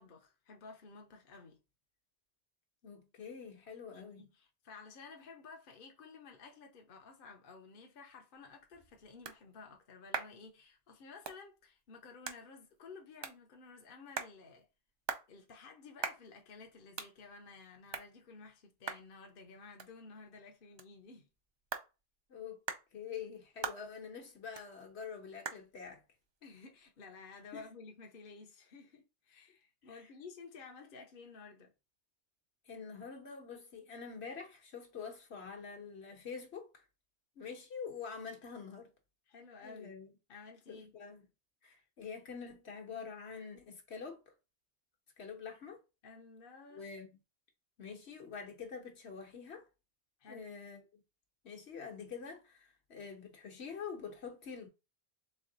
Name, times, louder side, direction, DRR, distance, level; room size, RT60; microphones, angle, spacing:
voice 1, 0.0-1.6 3.9-14.7 15.3-21.3 26.4-31.7 39.3-40.0 40.3-40.9 46.0-46.9 50.2-50.5, left 4 dB, 55° left, 0.9 m, -53 dB
voice 2, 2.8-4.3 22.3-22.6 22.9-26.0 27.5-27.6 32.7-36.8 37.4-38.9 39.6-40.1 40.7-41.2 41.6-44.2 45.2-45.8 46.7-47.2 47.8-49.7 50.3-51.0 51.4-54.7, left 6 dB, 70° left, 1.3 m, -46 dB
sound 1, 8.4-27.7, right 5 dB, 45° right, 0.3 m, -47 dB
3.6 x 3.2 x 3.8 m
omnidirectional pair, 1.2 m